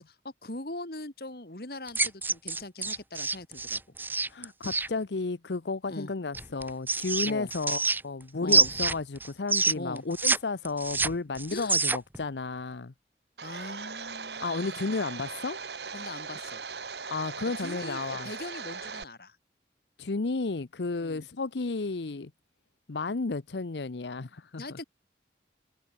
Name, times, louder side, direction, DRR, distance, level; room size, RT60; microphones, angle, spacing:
voice 1, 0.0-4.0 5.9-6.1 7.2-7.5 8.4-8.7 9.7-10.0 11.5-11.8 13.4-14.4 14.8-14.9 15.9-16.6 17.6-19.4 21.0-21.3 24.6-24.8, left 2 dB, 60° left, 2.5 m, -41 dB
sound 1, 1.9-4.9 6.3-8.2 8.5-10.4 10.6-12.2, right 3 dB, 10° right, 0.9 m, -26 dB
voice 2, 4.2-12.9 14.4-15.6 17.1-18.3 20.0-22.3 22.9-24.8, left 3 dB, 85° left, 0.8 m, -33 dB
Domestic sounds home sounds, 13.4-19.0, right 5 dB, 80° right, 2.9 m, -39 dB
head